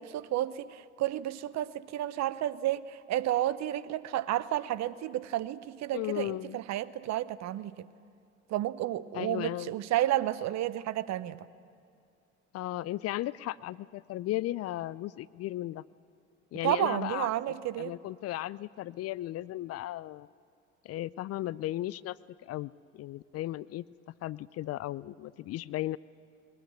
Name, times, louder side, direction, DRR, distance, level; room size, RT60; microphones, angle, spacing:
voice 1, 0.0-7.9 8.5-11.5 16.6-18.0, right 13 dB, 50° right, 17 dB, 0.9 m, -31 dB
voice 2, 5.9-6.6 9.1-9.7 12.5-15.8 16.5-17.3 17.8-20.3 20.8-23.8 24.2-26.0, left 15 dB, 45° left, 20 dB, 0.5 m, -35 dB
21.0 x 19.5 x 9.5 m, 2.3 s
hypercardioid pair, 60°, 35 cm